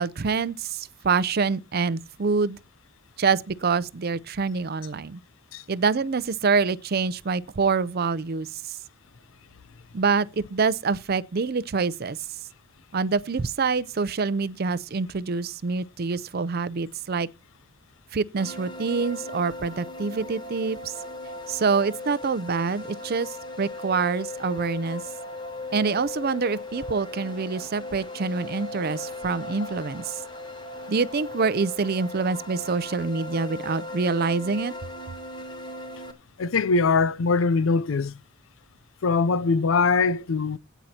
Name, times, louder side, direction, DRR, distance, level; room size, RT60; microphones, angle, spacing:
voice 1, 0.0-2.6 3.2-5.2 5.7-8.5 9.9-12.2 12.9-17.3 18.1-20.9 21.5-25.0 25.7-30.2 30.9-34.7, right 4 dB, 50° right, 0.5 m, -26 dB
sound 1, 18.4-36.1, left 2 dB, 20° left, 1.5 m, -38 dB
voice 2, 36.4-38.2 39.0-40.6, left 4 dB, 70° left, 0.5 m, -22 dB
17.5 x 9.2 x 2.8 m
head